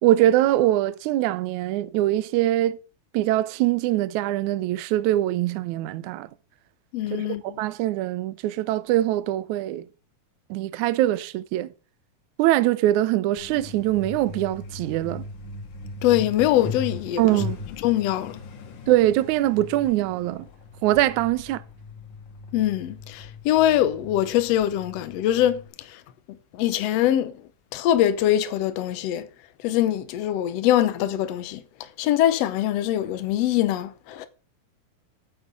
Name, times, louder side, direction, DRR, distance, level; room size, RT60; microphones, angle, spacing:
voice 1, 0.0-2.8 3.1-6.3 7.1-9.8 10.5-11.7 12.4-15.2 17.2-17.6 18.9-20.5 20.8-21.6, right 14 dB, 75° right, 1.8 m, -23 dB
voice 2, 6.9-7.6 16.0-17.4 17.8-18.4 22.5-25.6 25.9-26.0 26.5-27.4 27.7-29.3 29.6-31.6 32.0-34.3, left 12 dB, 80° left, 1.4 m, -23 dB
Truck, 13.4-25.7, left 3 dB, 60° left, 2.9 m, -39 dB
9.1 x 6.9 x 6.6 m
omnidirectional pair, 4.1 m